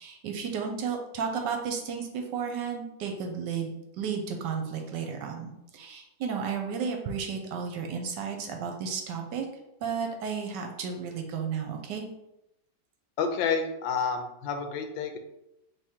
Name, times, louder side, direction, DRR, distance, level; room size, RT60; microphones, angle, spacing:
voice 1, 0.0-9.5 9.8-12.0, right 6 dB, 75° right, 3 dB, 1.2 m, -33 dB
voice 2, 13.2-15.2, left 5 dB, 85° left, 6 dB, 1.4 m, -29 dB
3.6 x 3.2 x 4.2 m, 0.88 s
omnidirectional pair, 2.0 m